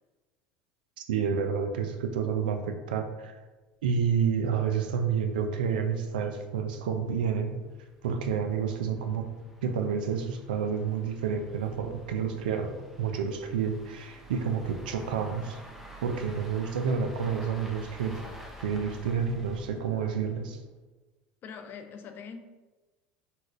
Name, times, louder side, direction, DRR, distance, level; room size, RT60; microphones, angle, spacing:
voice 1, 1.1-3.3 3.8-7.6 8.0-9.3 9.6-15.6 16.0-18.2 18.6-20.6, right 6 dB, 85° right, 6 dB, 0.4 m, -29 dB
sound 1, 5.5-5.6 6.2-20.6, equal, 5° right, 0.6 m, -50 dB
voice 2, 21.4-22.4, left 6 dB, 45° left, 6 dB, 0.4 m, -42 dB
4.0 x 2.4 x 2.4 m, 1.2 s
hypercardioid pair, 85°, 5 cm